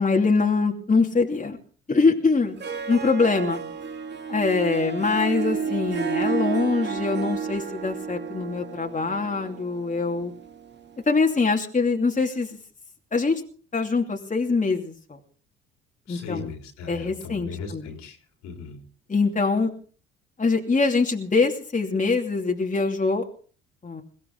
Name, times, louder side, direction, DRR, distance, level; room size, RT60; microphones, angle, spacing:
voice 1, 0.0-1.6 1.9-2.6 2.9-3.6 4.3-10.3 11.1-12.6 13.1-13.4 13.7-15.2 16.1-16.5 16.9-17.8 19.1-19.7 20.4-23.2 23.8-24.0, left 4 dB, 25° left, 2 dB, 2.8 m, -23 dB
Harp, 2.4-11.0, right 6 dB, 35° right, 2.1 m, -31 dB
voice 2, 16.1-18.2 18.4-18.8, left 5 dB, 70° left, 4 dB, 3.8 m, -38 dB
22.0 x 16.0 x 3.9 m, 0.41 s
hypercardioid pair, 55°, 29 cm